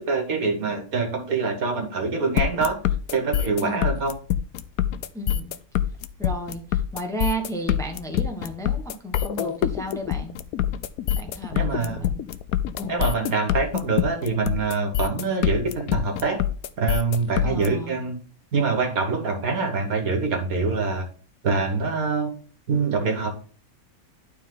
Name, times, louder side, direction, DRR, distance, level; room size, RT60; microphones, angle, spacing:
voice 1, 0.0-2.8 3.1-4.1 11.5-12.0 12.9-16.4 16.8-18.2 18.5-21.1 21.4-22.3 22.7-23.3, right 4 dB, 75° right, 4 dB, 2.1 m, -25 dB
sound 1, 2.4-17.7, left 11 dB, 80° left, 1.1 m, -25 dB
voice 2, 3.6-3.9 5.1-5.5 6.2-10.4 11.1-12.2 12.8-13.0 17.4-18.0, right 1 dB, ahead, 3 dB, 1.1 m, -33 dB
12.0 x 4.2 x 3.9 m, 0.40 s
omnidirectional pair, 1.5 m